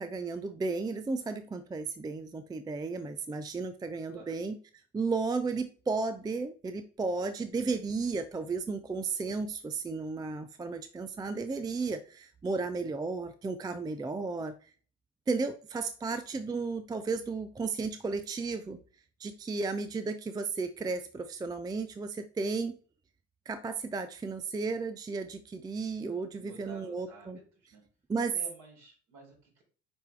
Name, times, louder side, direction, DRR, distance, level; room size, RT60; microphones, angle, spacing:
voice 1, 0.0-4.6 4.9-14.7 15.3-18.8 19.2-22.8 23.5-27.4 28.1-28.3, right 4 dB, 10° right, 11 dB, 0.5 m, -34 dB
voice 2, 4.1-4.4 26.3-27.8 28.3-29.6, right 3 dB, 50° right, -1 dB, 3.7 m, -51 dB
9.3 x 4.6 x 3.3 m, 0.41 s
figure-of-eight pair, 55°, 38 cm